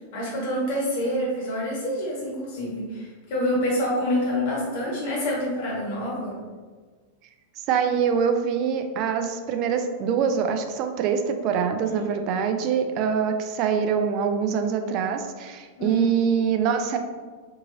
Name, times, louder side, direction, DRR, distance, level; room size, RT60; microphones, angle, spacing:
voice 1, 0.1-6.4 15.8-16.0, left 1 dB, 50° left, -4 dB, 1.4 m, -27 dB
voice 2, 7.6-17.0, right 7 dB, 40° right, 6 dB, 0.4 m, -24 dB
3.6 x 2.9 x 3.8 m, 1.5 s
figure-of-eight pair, 90°, 0 cm